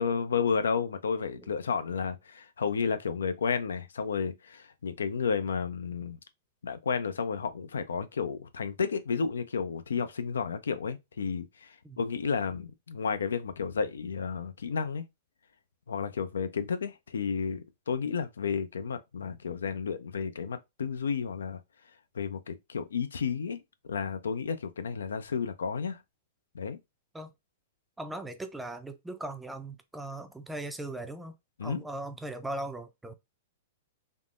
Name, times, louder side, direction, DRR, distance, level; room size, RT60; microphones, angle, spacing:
voice 1, 0.0-6.2 6.6-15.1 15.9-21.6 22.1-26.0 26.5-26.8 31.6-31.8, left 6 dB, 90° left, 0.4 m, -32 dB
voice 2, 28.0-31.4 31.6-33.1, right 1 dB, 5° right, 0.4 m, -39 dB
3.5 x 2.0 x 2.4 m
hypercardioid pair, 125°, 0 cm